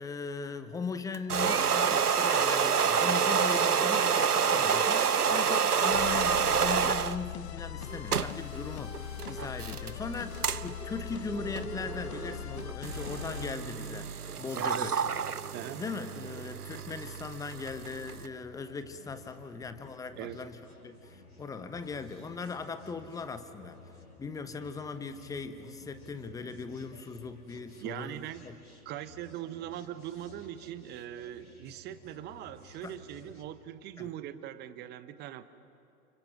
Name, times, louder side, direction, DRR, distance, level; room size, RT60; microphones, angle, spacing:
voice 1, 0.0-15.0 15.8-23.8 24.2-28.6 32.8-33.0 34.0-34.1, left 5 dB, 10° left, 10 dB, 1.0 m, -39 dB
sound 1, 1.1-7.2 7.8-18.3, right 6 dB, 85° right, 0.8 m, -29 dB
sound 2, 5.9-13.5, left 11 dB, 45° left, 0.8 m, -41 dB
voice 2, 14.5-14.9 15.5-15.8 20.2-20.4 27.8-28.5 28.8-35.4, right 12 dB, 20° right, 13 dB, 1.1 m, -41 dB
sound 3, 17.3-33.4, left 2 dB, 90° left, 6.3 m, -54 dB
30.0 x 30.0 x 6.1 m, 2.7 s
figure-of-eight pair, 110°, 44 cm